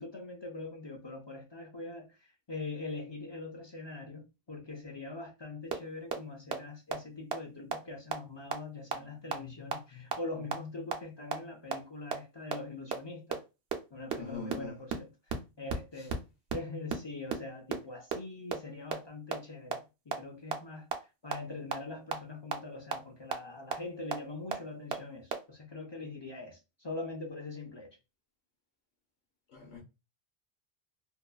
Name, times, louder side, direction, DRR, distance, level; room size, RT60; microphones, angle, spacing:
voice 1, 0.0-13.4 13.9-15.1 15.6-16.2 16.5-20.9 21.2-27.9, left 3 dB, 40° left, 0.4 m, -43 dB
sound 1, 5.7-5.8 6.1-6.2 6.5-6.6 6.9-7.0 7.3-7.4 7.7-7.8 8.1-8.2 8.5-8.6 8.9-9.0 9.3-9.4 9.7-9.8 10.1-10.2 10.5-10.6 10.9-11.0 11.3-11.4 11.7-11.8 12.1-12.2 12.5-12.6 12.9-13.0 13.3-13.4 13.7-13.8 14.1-14.2 14.5-14.6 14.9-15.0 15.3-15.4 15.7-15.8 16.1-16.2 16.5-16.6 16.9-17.0 17.3-17.4 17.7-17.8 18.1-18.2 18.5-18.6 18.9-19.0 19.3-19.4 19.7-19.8 20.1-20.2 20.5-20.6 20.9-21.0 21.3-21.4 21.7-21.8 22.1-22.2 22.5-22.6 22.9-23.0 23.3-23.4 23.7-23.8 24.1-24.2 24.5-24.6 24.9-25.0 25.3-25.4, right 8 dB, 80° right, 0.8 m, -30 dB
voice 2, 14.2-14.7 29.5-29.8, left 3 dB, 70° left, 0.8 m, -42 dB
2.7 x 2.2 x 2.2 m
omnidirectional pair, 1.0 m